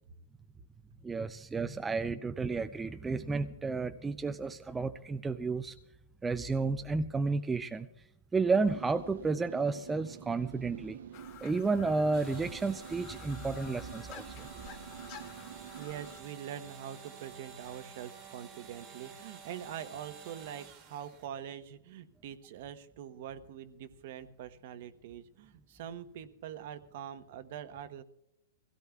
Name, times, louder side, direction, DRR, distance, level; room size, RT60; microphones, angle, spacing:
voice 1, 1.0-5.7 6.2-7.9 8.3-11.0 11.4-14.5, right 4 dB, 10° right, 8 dB, 0.4 m, -32 dB
sound 1, 8.5-16.2, right 9 dB, 75° right, 0.6 m, -48 dB
sound 2, 11.1-16.2, left 10 dB, 40° left, 2.4 m, -51 dB
sound 3, 12.1-21.3, right 7 dB, 30° right, 1.5 m, -51 dB
voice 2, 15.8-28.0, right 9 dB, 55° right, 11 dB, 1.0 m, -44 dB
24.0 x 16.5 x 2.3 m, 0.82 s
hypercardioid pair, 155°, 0 cm